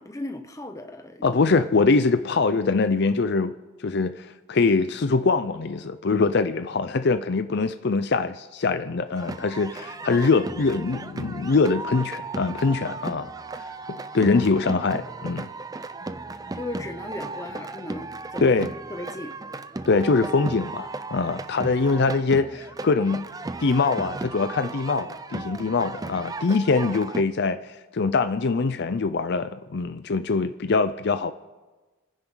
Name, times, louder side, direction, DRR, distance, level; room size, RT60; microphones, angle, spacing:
voice 1, 0.0-1.7 2.0-2.2 16.0-16.1 16.4-18.5 18.9-19.3, left 1 dB, 15° left, 0.9 m, -37 dB
voice 2, 1.2-3.5 3.8-13.3 13.9-15.5 18.4-18.7 19.9-23.3 23.6-31.3, left 4 dB, 55° left, 0.5 m, -23 dB
sound 1, 9.1-27.2, right 3 dB, 20° right, 0.4 m, -36 dB
30.0 x 10.5 x 3.9 m
head